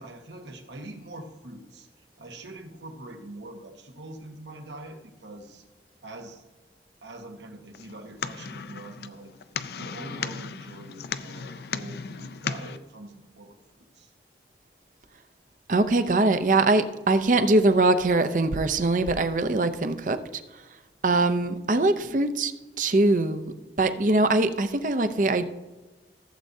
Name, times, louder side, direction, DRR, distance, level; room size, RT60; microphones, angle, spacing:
voice 1, 0.0-5.6 6.0-6.4 7.0-9.3 9.7-14.1 22.0-22.3, right 1 dB, 85° right, 4 dB, 1.4 m, -44 dB
sound 1, 7.7-12.8, left 6 dB, 65° left, 0.4 m, -36 dB
voice 2, 15.7-20.2 20.5-20.6 21.0-22.5 22.8-25.4, right 2 dB, 45° right, 10 dB, 0.6 m, -22 dB
15.0 x 7.7 x 2.7 m, 1.2 s
head